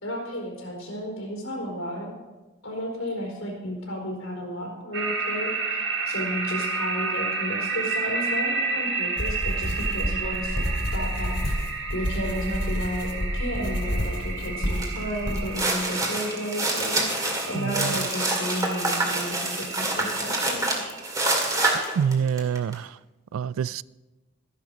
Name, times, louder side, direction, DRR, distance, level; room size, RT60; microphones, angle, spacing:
voice 1, 0.0-2.1 2.6-10.6 10.9-11.4 11.9-20.7, equal, 90° left, 4.0 m, -33 dB
sound 1, 4.9-21.7, right 4 dB, 60° right, 1.7 m, -32 dB
sound 2, 9.2-15.5, equal, 65° left, 2.8 m, -29 dB
sound 3, 14.8-15.0 15.4-22.7, right 2 dB, 15° right, 2.0 m, -26 dB
voice 2, 17.5-17.9 22.0-22.9 23.3-23.8, right 7 dB, 85° right, 0.3 m, -26 dB
13.5 x 11.0 x 5.2 m
head